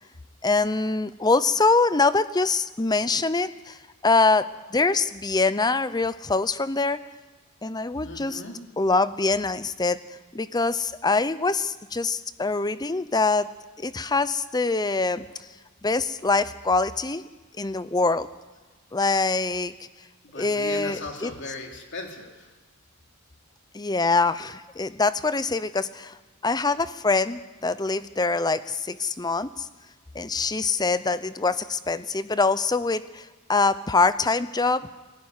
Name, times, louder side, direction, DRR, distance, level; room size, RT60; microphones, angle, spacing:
voice 1, 0.4-3.8 4.0-7.0 7.6-8.4 8.8-10.0 10.3-13.5 13.8-15.3 15.8-17.2 17.6-18.3 18.9-19.7 20.3-21.3 23.7-26.2 26.4-29.7 30.1-34.9, left 3 dB, 20° left, 14 dB, 0.7 m, -24 dB
voice 2, 8.0-8.6 20.2-22.5, left 2 dB, 55° left, 2 dB, 3.2 m, -37 dB
19.5 x 16.0 x 9.6 m, 1.2 s
head